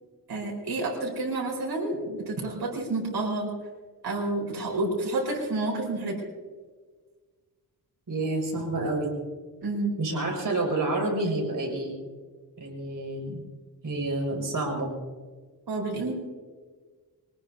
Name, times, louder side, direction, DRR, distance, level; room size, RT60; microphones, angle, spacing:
voice 1, 0.3-3.5 4.0-6.2 9.6-9.9 15.7-16.1, right 2 dB, 80° right, -2 dB, 4.7 m, -29 dB
voice 2, 8.1-9.1 10.0-12.0 12.6-13.4 13.8-14.9, right 2 dB, 55° right, 0 dB, 5.7 m, -29 dB
23.5 x 19.0 x 2.8 m, 1.5 s
wide cardioid pair, 115°, 38 cm